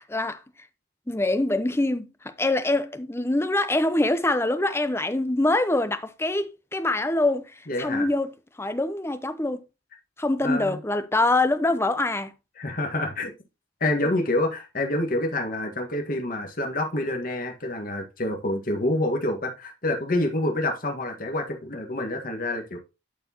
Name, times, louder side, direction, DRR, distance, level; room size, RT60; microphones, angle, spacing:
voice 1, 1.1-8.3 8.6-9.6 10.2-12.3, left 2 dB, 15° left, 0.7 m, -24 dB
voice 2, 7.7-8.1 10.4-10.8 12.6-13.3 13.8-22.8, left 1 dB, 45° left, 1.7 m, -27 dB
12.0 x 4.5 x 2.9 m
head